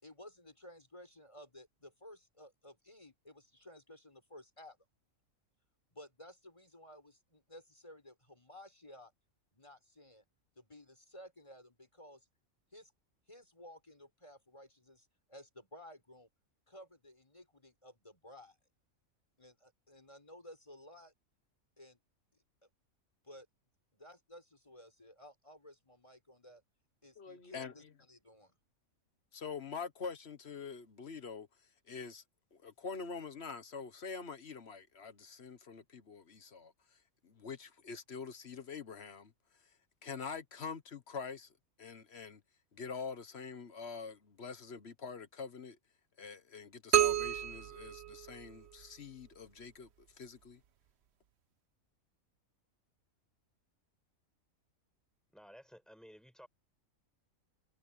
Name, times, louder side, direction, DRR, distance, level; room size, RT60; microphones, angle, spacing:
voice 1, 0.0-4.8 5.9-9.1 9.5-10.2 10.6-12.3 12.7-12.9 13.3-16.3 16.7-18.6 19.4-21.1 21.8-22.0 22.3-22.4 23.2-23.5 23.9-26.6 27.0-28.6, left 1 dB, 20° left, 6.6 m, -55 dB
voice 2, 27.2-27.9 29.3-31.5 31.9-32.2 32.5-36.7 37.2-39.3 40.0-41.5 41.8-42.4 42.7-45.8 46.2-49.9 50.2-50.6, left 5 dB, 50° left, 1.3 m, -45 dB
sound 1, 46.9-48.8, right 11 dB, 55° right, 0.9 m, -31 dB
voice 3, 55.3-56.5, equal, ahead, 7.4 m, -55 dB
omnidirectional pair, 1.5 m